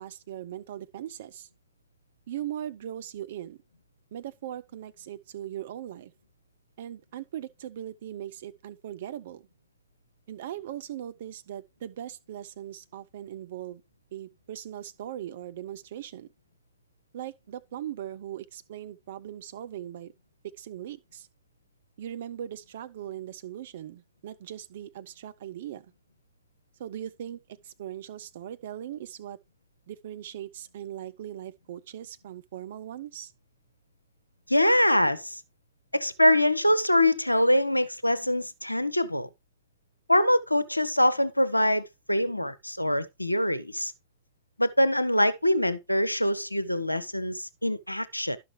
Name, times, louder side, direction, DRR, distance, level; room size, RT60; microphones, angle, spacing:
voice 1, 0.0-1.5 2.3-3.6 4.1-6.1 6.8-9.4 10.3-13.8 14.1-16.3 17.1-20.1 20.6-21.3 22.0-25.9 26.8-27.4 27.6-29.4 29.9-33.3, right 11 dB, 60° right, 0.6 m, -39 dB
voice 2, 34.5-35.4 35.9-39.3 40.1-43.9 44.6-48.4, left 1 dB, 90° left, 0.5 m, -24 dB
11.5 x 5.9 x 3.1 m
figure-of-eight pair, 90°, 0 cm